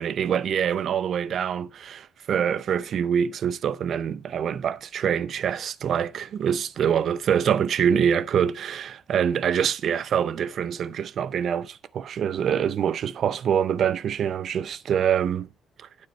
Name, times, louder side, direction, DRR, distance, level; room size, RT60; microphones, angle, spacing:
voice 1, 0.0-15.5 15.8-15.9, right 8 dB, 65° right, 0.6 m, -25 dB
8.9 x 8.7 x 4.3 m
supercardioid pair, 60°, 0 cm